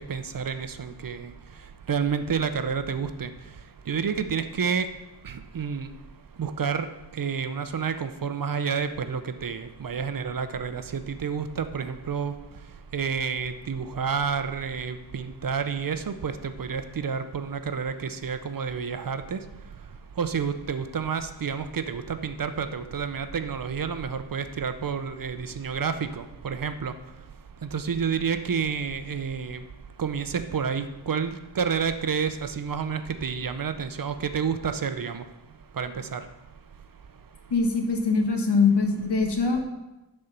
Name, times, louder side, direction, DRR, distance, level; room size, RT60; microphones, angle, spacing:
voice 1, 0.1-1.3 1.9-3.3 3.9-4.9 5.2-5.9 6.4-6.9 7.1-12.3 12.9-19.4 20.2-26.9 27.7-29.6 30.0-35.2 35.8-36.2, right 6 dB, 50° right, 10 dB, 0.6 m, -29 dB
voice 2, 37.5-39.6, left 4 dB, 65° left, 4 dB, 1.5 m, -23 dB
10.5 x 4.4 x 6.6 m, 1.0 s
wide cardioid pair, 125°, 43 cm